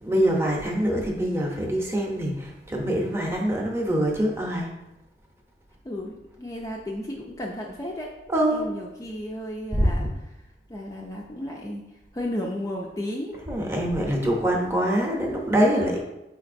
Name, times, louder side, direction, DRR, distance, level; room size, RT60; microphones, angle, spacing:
voice 1, 0.0-4.7 8.3-8.7 9.8-10.1 13.5-16.0, equal, 15° right, -1 dB, 0.6 m, -24 dB
voice 2, 5.8-8.1 8.5-13.4 15.7-16.0, left 1 dB, 20° left, -1 dB, 0.3 m, -34 dB
5.1 x 3.9 x 2.5 m, 0.95 s
head